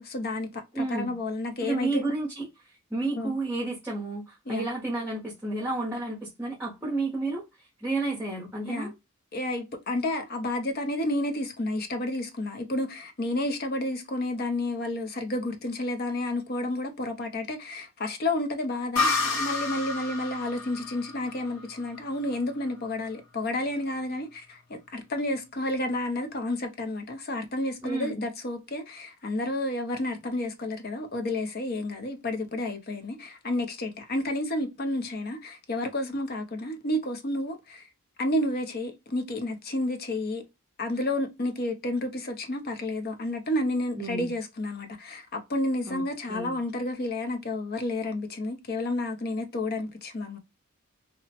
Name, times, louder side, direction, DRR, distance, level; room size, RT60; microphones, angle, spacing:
voice 1, 0.0-2.1 3.2-3.4 4.5-4.7 8.6-8.9 9.3-37.8 38.2-40.4 40.8-50.4, left 1 dB, 45° left, 0.6 m, -31 dB
voice 2, 0.7-1.2 1.6-8.9 27.8-28.2 44.0-44.3 45.9-46.0 46.3-46.6, right 2 dB, 10° right, 0.7 m, -31 dB
sound 1, 19.0-22.5, left 3 dB, 85° left, 1.2 m, -30 dB
2.9 x 2.1 x 2.7 m
head